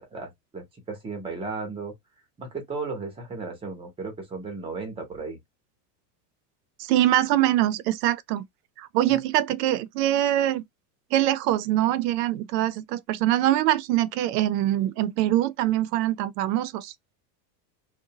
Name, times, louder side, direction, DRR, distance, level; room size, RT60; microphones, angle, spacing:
voice 1, 0.0-1.9 2.4-5.4 9.1-9.2, right 4 dB, 10° right, 0.6 m, -35 dB
voice 2, 6.8-8.4 8.8-10.6 11.1-16.9, right 13 dB, 70° right, 0.5 m, -23 dB
2.7 x 2.1 x 2.7 m
supercardioid pair, 155°, 50 cm